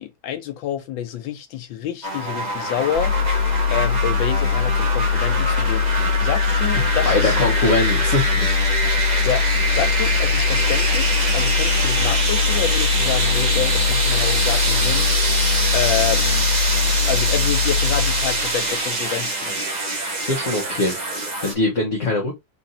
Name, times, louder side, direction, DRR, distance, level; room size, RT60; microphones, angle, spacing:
voice 1, 0.0-3.1 3.7-7.4 9.2-9.4 9.7-15.1 15.7-16.5 17.1-19.6, left 10 dB, 75° left, 1.4 m, -28 dB
sound 1, 2.0-21.5, right 2 dB, 30° right, 0.8 m, -24 dB
sound 2, 2.9-18.7, left 7 dB, 60° right, 1.6 m, -22 dB
voice 2, 7.0-8.7 20.2-22.3, left 2 dB, 45° left, 1.3 m, -23 dB
3.8 x 2.6 x 4.1 m
omnidirectional pair, 2.2 m